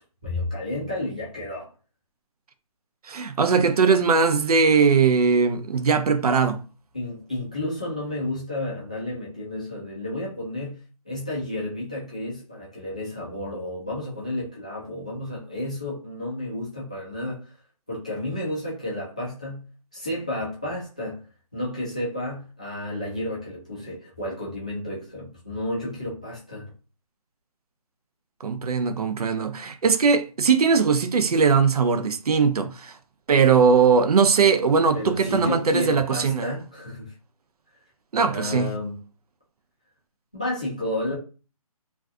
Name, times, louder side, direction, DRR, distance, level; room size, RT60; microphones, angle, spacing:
voice 1, 0.2-1.7 6.9-17.6 17.9-19.7 19.9-21.2 21.5-26.7 34.9-37.1 38.1-39.0 40.3-41.1, left 1 dB, 10° left, 0.3 m, -31 dB
voice 2, 3.1-6.6 28.4-32.9 33.3-36.5 38.1-38.7, right 5 dB, 80° right, 0.5 m, -20 dB
2.5 x 2.3 x 2.3 m
hypercardioid pair, 170°, 19 cm